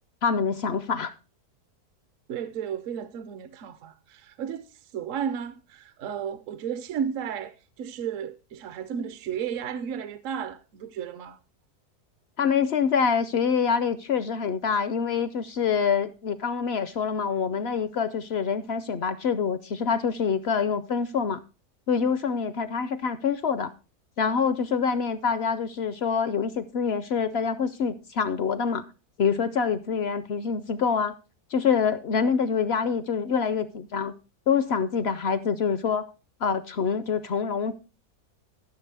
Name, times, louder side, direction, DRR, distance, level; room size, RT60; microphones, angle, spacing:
voice 1, 0.2-1.1 12.4-21.4 21.9-23.7 24.2-28.9 29.2-31.1 31.5-34.1 34.5-36.1 36.4-37.7, left 6 dB, 65° left, 0.6 m, -26 dB
voice 2, 2.3-11.4, right 8 dB, 65° right, 0.9 m, -33 dB
14.5 x 6.6 x 3.3 m
omnidirectional pair, 1.6 m